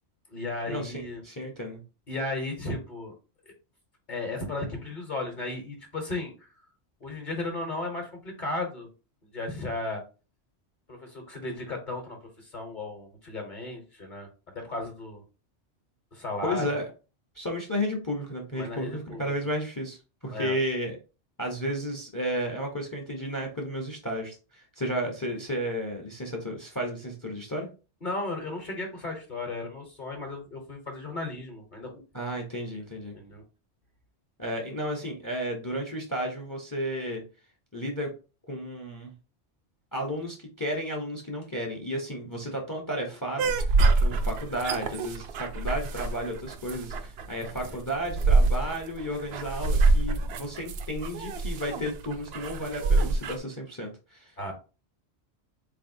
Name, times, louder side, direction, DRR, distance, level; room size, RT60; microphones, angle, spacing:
voice 1, 0.3-1.2 2.1-3.1 4.1-6.5 7.0-8.9 9.3-10.0 10.9-14.3 14.5-15.2 16.1-16.7 18.5-19.2 20.3-20.5 28.0-32.0 33.1-33.4 54.4-54.5, left 2 dB, 45° left, 2 dB, 1.1 m, -35 dB
voice 2, 1.2-1.8 16.4-16.9 17.3-21.0 21.4-27.7 32.1-33.2 34.4-37.2 37.7-38.1 38.5-39.1 39.9-54.3, equal, 20° left, 2 dB, 0.7 m, -33 dB
sound 1, 43.4-53.4, right 3 dB, 65° right, 0.7 m, -26 dB
4.1 x 3.4 x 2.6 m, 0.32 s
omnidirectional pair, 1.2 m